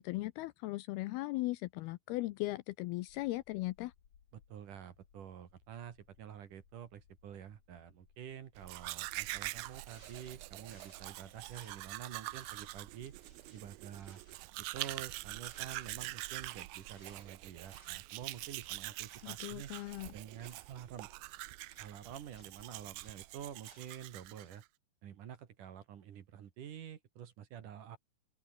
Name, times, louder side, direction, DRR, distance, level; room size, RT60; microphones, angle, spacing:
voice 1, 0.0-3.9 19.2-20.1, left 19 dB, 80° left, 2.4 m, -38 dB
sound 1, 3.1-13.5, left 8 dB, 45° left, 3.3 m, -69 dB
voice 2, 4.3-13.1 13.5-14.2 14.7-19.7 20.1-21.1 21.8-24.6 25.0-28.0, right 9 dB, 60° right, 2.9 m, -48 dB
Domestic sounds home sounds, 8.6-24.6, right 19 dB, 80° right, 2.2 m, -45 dB
sound 2, 9.1-24.6, right 3 dB, 25° right, 5.3 m, -64 dB
open air
omnidirectional pair, 4.9 m